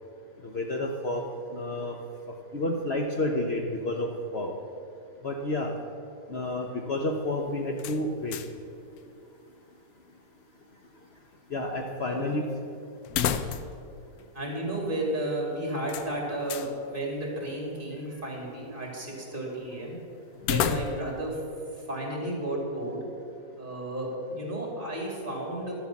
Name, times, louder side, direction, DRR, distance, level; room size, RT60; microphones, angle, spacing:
voice 1, 0.4-1.2 1.5-2.0 2.5-4.5 5.2-5.7 6.3-8.4 11.5-12.4, left 1 dB, 50° left, 2 dB, 1.0 m, -30 dB
sound 1, 7.8-8.7 9.0-9.1 13.0-13.9 14.2-14.3 15.9-16.7 20.4-21.2, left 8 dB, 75° left, 1.1 m, -31 dB
voice 2, 14.3-19.9 20.5-21.4 21.9-23.1 23.6-25.7, right 1 dB, 35° right, -1 dB, 3.0 m, -33 dB
12.5 x 9.1 x 7.1 m, 2.6 s
omnidirectional pair, 1.6 m